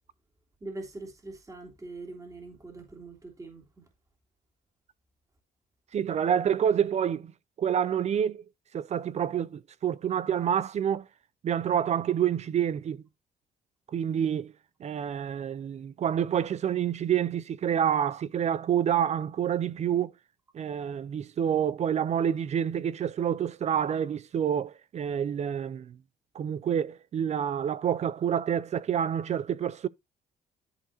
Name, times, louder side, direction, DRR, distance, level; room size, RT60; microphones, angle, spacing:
voice 1, 0.6-3.9, right 2 dB, 20° right, 3.2 m, -43 dB
voice 2, 5.9-7.3 7.6-8.4 8.7-11.0 11.4-13.0 13.9-14.5 14.8-20.1 20.5-25.9 26.3-29.9, right 9 dB, 45° right, 0.5 m, -28 dB
13.0 x 4.6 x 2.9 m
cardioid pair, 105°, 16 cm